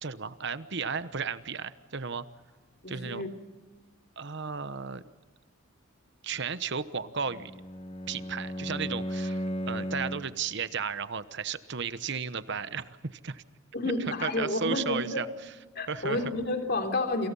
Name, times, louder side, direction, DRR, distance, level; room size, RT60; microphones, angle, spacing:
voice 1, 0.0-2.2 2.9-3.3 4.2-5.0 6.2-7.5 8.1-13.4 14.2-15.3 15.9-16.4, right 5 dB, 55° right, 13 dB, 1.1 m, -34 dB
voice 2, 2.8-3.3 13.7-15.2 15.7-17.3, left 2 dB, 50° left, 5 dB, 3.3 m, -30 dB
Bowed string instrument, 7.2-10.4, equal, 25° left, 1.2 m, -35 dB
28.5 x 27.0 x 5.5 m, 1.2 s
head